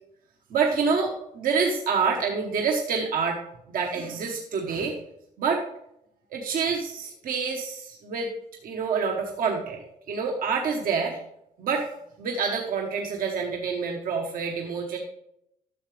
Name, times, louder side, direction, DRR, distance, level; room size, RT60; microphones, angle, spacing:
voice 1, 0.5-3.4 3.7-4.9 5.4-5.6 6.3-8.3 8.6-9.8 10.1-11.2 11.6-11.9 12.2-15.0, right 5 dB, 70° right, 1 dB, 1.2 m, -27 dB
11.5 x 6.6 x 3.3 m, 0.77 s
cardioid pair, 75°, 15 cm